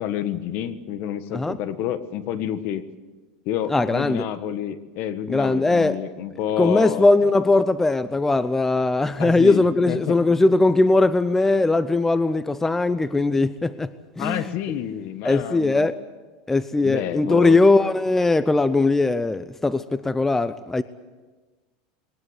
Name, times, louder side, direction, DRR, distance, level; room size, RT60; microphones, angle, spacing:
voice 1, 0.0-2.8 3.4-7.1 9.2-10.2 14.2-15.9 16.8-17.6, left 10 dB, 50° left, 1.5 m, -29 dB
voice 2, 3.7-4.2 5.3-6.0 6.6-13.9 14.2-14.5 15.2-16.0 16.5-20.8, left 2 dB, 10° left, 0.6 m, -20 dB
21.5 x 19.5 x 8.1 m
supercardioid pair, 135°, 4 cm